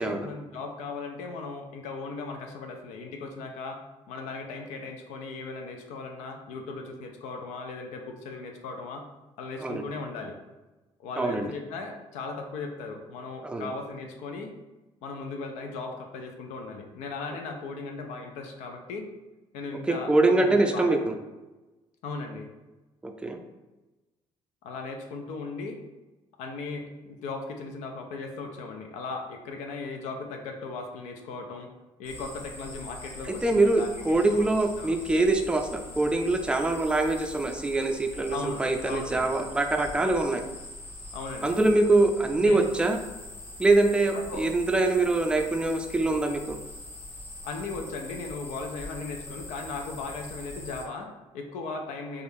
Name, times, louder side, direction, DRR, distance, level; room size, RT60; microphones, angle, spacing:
voice 1, 0.0-9.1 9.4-10.3 11.0-14.5 15.0-19.1 19.5-21.0 22.0-22.5 24.6-25.8 26.4-31.7 32.0-34.5 34.8-34.9 38.3-39.3 41.1-41.6 42.4-42.7 44.1-44.4 47.4-52.2, left 3 dB, 85° left, 4 dB, 0.4 m, -37 dB
voice 2, 11.2-11.5 13.4-13.7 20.1-21.1 23.0-23.4 33.4-40.4 41.4-43.0 43.6-46.6, right 2 dB, 10° right, 4 dB, 0.4 m, -24 dB
sound 1, 32.0-50.9, left 2 dB, 15° left, 1.3 m, -43 dB
3.3 x 2.4 x 2.6 m, 1.1 s
cardioid pair, 85°, 12 cm